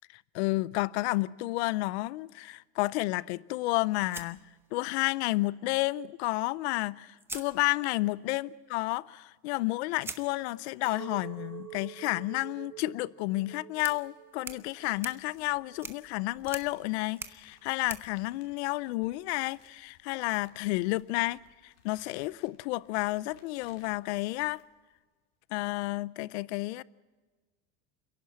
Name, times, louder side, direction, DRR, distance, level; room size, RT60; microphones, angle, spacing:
voice 1, 0.3-4.4 4.7-24.6 25.5-26.8, left 20 dB, 75° left, 0.5 m, -31 dB
sound 1, 4.1-5.2 6.6-6.7 7.2-8.2 10.0-19.2, right 3 dB, 5° right, 0.8 m, -47 dB
Chink clink, 10.8-16.2, right 14 dB, 75° right, 4.3 m, -48 dB
sound 2, 14.8-25.0, left 8 dB, 60° left, 2.9 m, -64 dB
29.0 x 11.0 x 8.5 m
cardioid pair, 160°, 33 cm